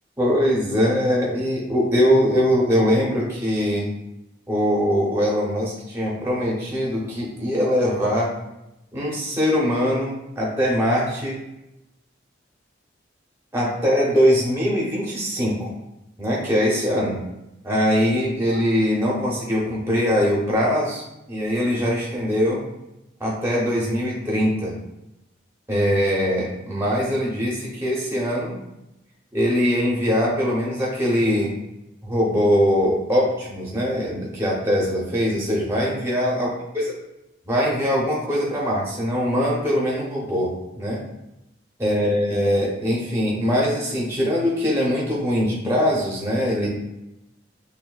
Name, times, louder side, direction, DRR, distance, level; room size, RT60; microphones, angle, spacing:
voice 1, 0.2-3.9 4.5-8.3 8.9-11.4 13.5-15.7 16.2-17.2 17.6-21.0 21.3-22.6 23.2-24.7 25.7-28.6 29.3-31.5 32.0-36.5 37.4-41.0 41.8-46.7, equal, 15° right, -4 dB, 0.7 m, -22 dB
3.9 x 2.6 x 2.3 m, 0.90 s
head